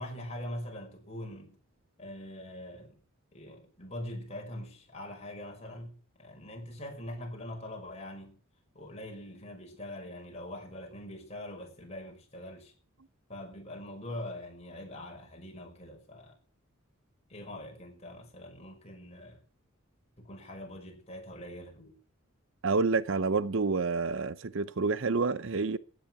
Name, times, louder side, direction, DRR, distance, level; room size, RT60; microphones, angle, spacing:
voice 1, 0.0-1.6 2.0-3.0 3.3-8.4 8.7-12.7 13.3-16.3 17.3-19.4 20.2-22.0, left 1 dB, 30° left, 5.6 m, -43 dB
voice 2, 22.6-25.8, right 4 dB, 60° right, 0.6 m, -28 dB
15.5 x 10.0 x 5.9 m
head